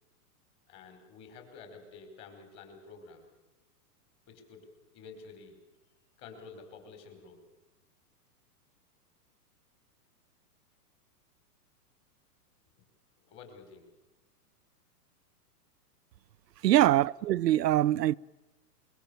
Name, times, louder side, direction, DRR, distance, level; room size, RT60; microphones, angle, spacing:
voice 1, 0.7-3.3 4.3-4.7 4.9-5.6 6.2-7.4 13.2-13.9 16.8-17.0, left 4 dB, 25° left, 4.5 m, -50 dB
voice 2, 16.6-18.2, right 13 dB, 90° right, 0.8 m, -23 dB
26.0 x 23.0 x 6.9 m
hypercardioid pair, 170°, 48 cm